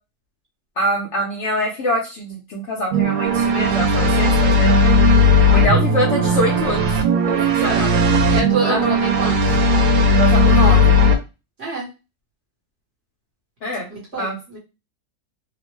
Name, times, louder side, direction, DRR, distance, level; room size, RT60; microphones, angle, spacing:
voice 1, 0.8-4.9 5.4-6.9 7.3-8.0 8.6-9.0 10.2-11.0 13.6-13.9 14.2-14.4, left 1 dB, 60° left, -1 dB, 0.8 m, -24 dB
sound 1, 2.9-11.2, left 1 dB, 90° right, 1.2 m, -16 dB
voice 2, 7.3-7.9 8.3-9.6 11.6-11.9 13.9-14.6, right 2 dB, 45° right, -2 dB, 1.1 m, -27 dB
2.9 x 2.1 x 3.0 m, 0.28 s
omnidirectional pair, 1.7 m